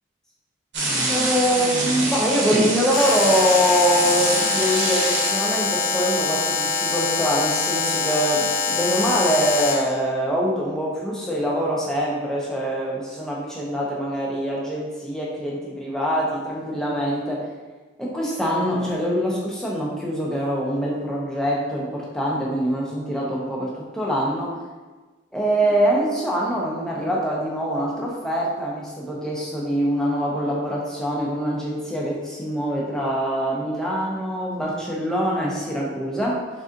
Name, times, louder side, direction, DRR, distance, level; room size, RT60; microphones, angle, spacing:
sound 1, 0.7-5.4, right 2 dB, 60° right, 0.9 m, -25 dB
voice 1, 1.1-17.5 18.0-24.6 25.3-36.5, equal, 5° left, -4 dB, 0.7 m, -24 dB
Alarm, 2.9-9.9, left 4 dB, 80° left, 0.4 m, -24 dB
4.0 x 3.7 x 2.5 m, 1.3 s
head